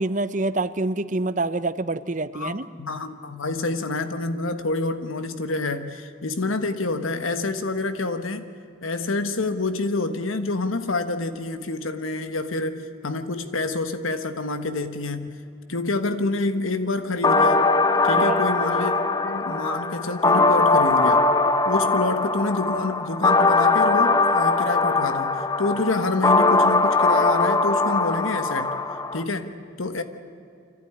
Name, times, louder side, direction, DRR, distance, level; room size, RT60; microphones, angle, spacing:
voice 1, 0.0-2.7 18.2-18.4, right 2 dB, 40° right, 12 dB, 0.7 m, -26 dB
voice 2, 2.3-8.5 8.8-15.4 15.7-17.7 18.0-18.9 19.2-21.3 21.6-28.7 29.1-30.0, left 3 dB, 85° left, 10 dB, 1.2 m, -27 dB
sound 1, 17.2-29.2, left 3 dB, 20° left, 0.8 m, -20 dB
25.5 x 15.5 x 10.0 m, 2.6 s
head